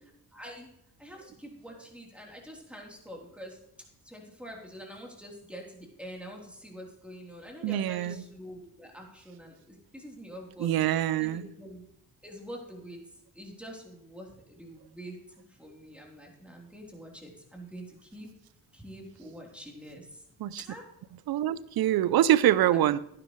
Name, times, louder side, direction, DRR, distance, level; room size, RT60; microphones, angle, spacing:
voice 1, 0.3-0.7 1.0-3.6 4.0-10.7 11.2-11.8 12.2-13.0 13.4-15.2 15.6-18.3 18.7-20.2 20.7-20.8, equal, 5° right, -1 dB, 3.6 m, -45 dB
voice 2, 7.6-8.2 10.6-11.5 20.4-20.6 21.3-23.0, right 12 dB, 65° right, 18 dB, 0.6 m, -25 dB
11.5 x 10.0 x 3.2 m, 0.76 s
supercardioid pair, 50°, 39 cm